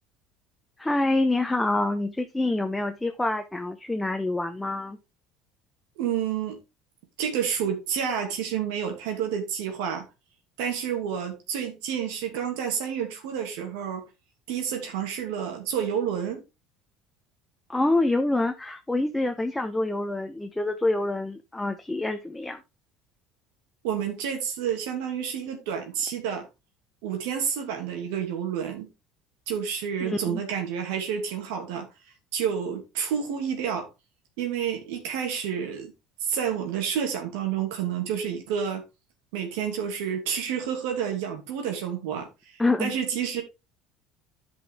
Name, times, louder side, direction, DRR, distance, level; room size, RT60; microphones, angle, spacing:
voice 1, 0.8-5.0 17.7-22.6 30.0-30.4 42.6-42.9, left 2 dB, 10° left, 0.8 m, -26 dB
voice 2, 6.0-6.6 7.2-10.1 10.6-14.0 14.5-16.4 23.8-26.5 27.0-28.9 29.5-31.9 32.3-33.9 34.4-35.9 36.2-38.8 39.3-42.3 42.8-43.4, right 8 dB, 85° right, 2.5 m, -29 dB
10.5 x 5.4 x 3.7 m
supercardioid pair, 110°, 0 cm